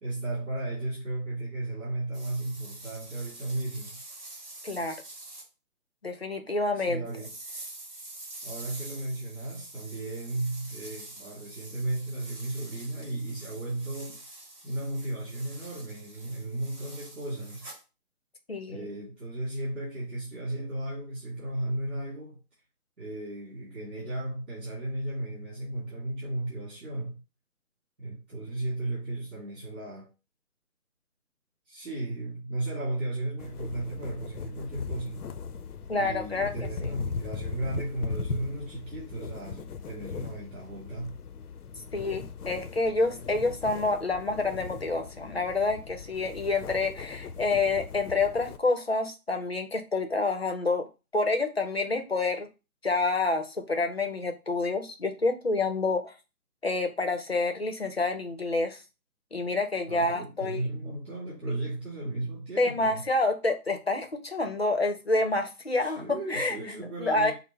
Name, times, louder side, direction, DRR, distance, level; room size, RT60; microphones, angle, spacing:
voice 1, 0.0-4.0 6.7-7.3 8.4-14.2 14.6-17.7 18.7-22.4 23.0-27.1 28.0-30.1 31.7-35.2 35.9-41.1 59.9-63.0 65.8-67.3, right 2 dB, 50° right, 2.2 m, -35 dB
sound 1, 2.1-5.4 7.0-17.8, right 2 dB, 20° right, 1.9 m, -46 dB
voice 2, 4.6-5.0 6.0-7.0 18.5-18.9 35.9-36.7 41.9-50.9 51.1-52.5 52.8-56.1 56.6-58.8 59.3-60.6 62.6-66.6 67.0-67.3, left 3 dB, 45° left, 0.6 m, -28 dB
sound 2, 33.4-48.6, left 5 dB, 90° left, 0.7 m, -39 dB
5.7 x 2.1 x 4.0 m
hypercardioid pair, 175°, 44 cm